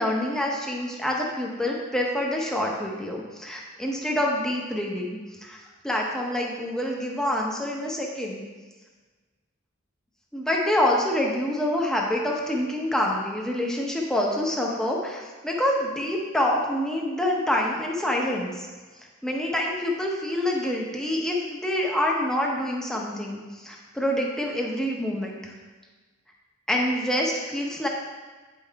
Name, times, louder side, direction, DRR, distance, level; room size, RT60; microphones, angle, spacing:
voice 1, 0.0-5.6 5.8-8.4 10.3-18.7 19.2-25.5 26.7-27.9, left 1 dB, 5° left, -2 dB, 1.0 m, -26 dB
9.4 x 5.8 x 3.5 m, 1.3 s
head